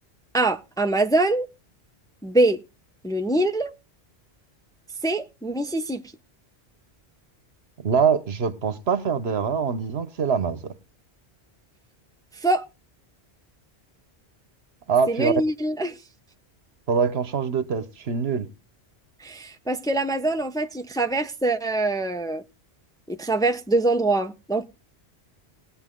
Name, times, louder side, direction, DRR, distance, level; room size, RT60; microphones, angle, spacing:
voice 1, 0.3-1.5 2.2-2.6 3.0-3.7 5.0-6.0 12.4-12.6 15.1-15.9 19.2-22.4 23.1-24.6, right 2 dB, 5° left, 0.7 m, -24 dB
voice 2, 7.8-10.7 14.9-15.3 16.9-18.5, right 6 dB, 70° right, 1.2 m, -24 dB
19.0 x 8.8 x 3.7 m
omnidirectional pair, 1.1 m